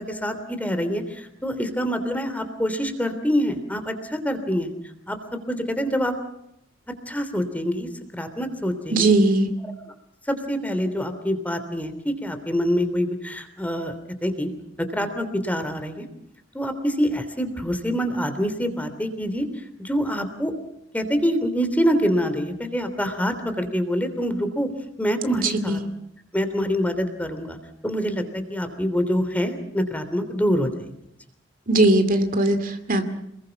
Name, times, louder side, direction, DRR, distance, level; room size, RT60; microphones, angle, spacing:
voice 1, 0.0-4.7 5.1-6.1 6.9-9.1 10.3-14.5 14.8-16.1 16.5-20.5 20.9-24.7 25.0-25.8 26.3-27.6 27.8-30.8, equal, 10° left, 8 dB, 3.1 m, -26 dB
voice 2, 8.9-9.5 25.3-25.9 31.7-33.1, right 2 dB, 45° right, 8 dB, 2.4 m, -20 dB
28.5 x 21.5 x 5.9 m, 0.78 s
head